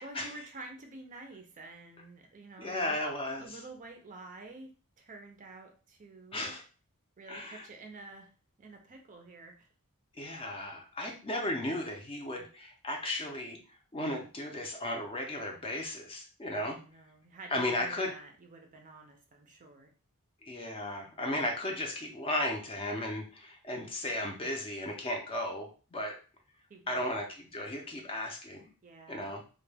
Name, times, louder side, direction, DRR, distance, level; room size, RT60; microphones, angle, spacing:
voice 1, 0.0-3.0 3.4-4.7 5.0-6.5 7.2-8.3 8.6-9.7 16.6-19.9 26.7-27.2 28.8-29.3, right 2 dB, 35° right, 3 dB, 0.4 m, -49 dB
voice 2, 2.6-3.6 6.3-6.6 7.3-7.6 10.2-13.6 13.9-16.8 17.5-18.1 20.4-26.2 26.9-28.7 29.1-29.4, left 1 dB, 25° left, 1 dB, 0.5 m, -35 dB
2.2 x 2.1 x 3.3 m, 0.36 s
head